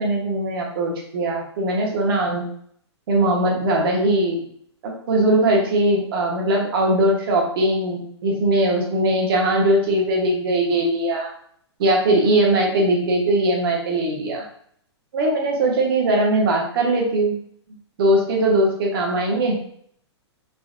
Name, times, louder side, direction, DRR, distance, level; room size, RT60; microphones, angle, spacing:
voice 1, 0.0-2.4 3.1-4.4 4.8-11.3 11.8-14.4 15.1-17.3 18.0-19.6, right 1 dB, 55° right, -1 dB, 1.1 m, -20 dB
3.8 x 2.7 x 2.5 m, 0.63 s
hypercardioid pair, 150°, 15 cm